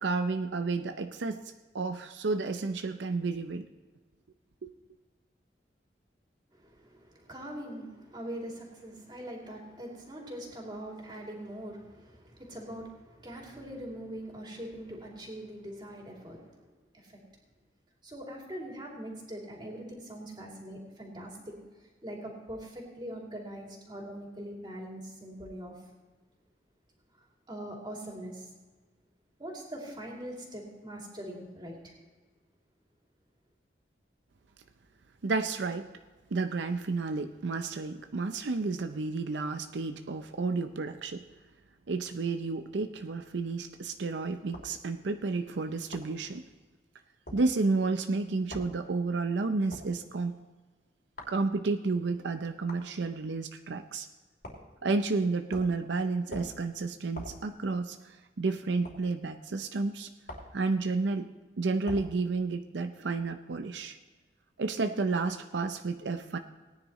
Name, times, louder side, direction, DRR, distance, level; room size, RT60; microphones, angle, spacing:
voice 1, 0.0-1.4 1.7-3.7 4.6-4.7 35.2-35.9 36.3-41.2 41.9-46.4 47.3-50.4 51.3-54.1 54.8-60.1 60.5-61.3 61.6-64.0 64.6-66.4, right 3 dB, 85° right, 8 dB, 0.6 m, -31 dB
voice 2, 6.5-16.6 16.9-17.2 18.0-21.6 22.0-25.7 27.5-28.5 29.4-31.9, right 1 dB, 25° right, -2 dB, 2.8 m, -42 dB
sound 1, 44.5-44.7 45.9-46.1 47.3-47.4 48.5-48.7 49.7-49.9 51.2-51.4 52.7-52.9 54.4-54.7 55.5-55.8 56.3-56.6 57.1-57.4 58.8-59.0 60.3-60.6 61.8-62.1, left 1 dB, 55° left, 3.0 m, -43 dB
19.0 x 10.0 x 3.1 m, 1.3 s
head